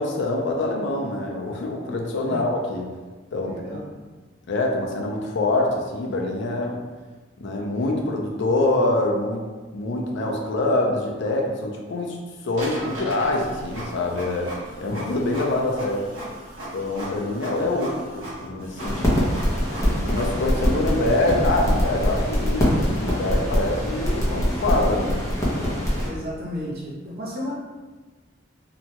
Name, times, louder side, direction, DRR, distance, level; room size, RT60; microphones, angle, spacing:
voice 1, 0.0-2.9 3.3-4.1 4.5-6.8 7.4-9.4 9.7-12.2 12.4-14.5 14.8-16.1 16.7-19.3 19.8-25.2, left 2 dB, 65° left, 0 dB, 0.4 m, -25 dB
voice 2, 3.4-3.8 17.6-17.9 26.1-27.6, equal, 50° right, -4 dB, 0.7 m, -33 dB
Printer, 12.5-20.5, right 1 dB, 85° right, 1.1 m, -37 dB
sound 1, 18.8-26.1, equal, 15° left, 0.6 m, -23 dB
2.8 x 2.2 x 2.8 m, 1.3 s
head